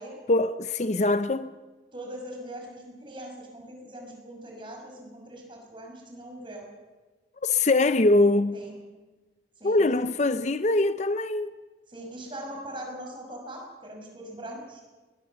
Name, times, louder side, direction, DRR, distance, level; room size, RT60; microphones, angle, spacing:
voice 1, 0.3-1.5 7.4-8.6 9.6-11.5, left 2 dB, 40° left, 0.6 m, -23 dB
voice 2, 1.9-6.7 8.5-8.7 9.6-9.8 11.9-14.8, right 1 dB, 30° right, 6.0 m, -41 dB
21.0 x 21.0 x 6.9 m
head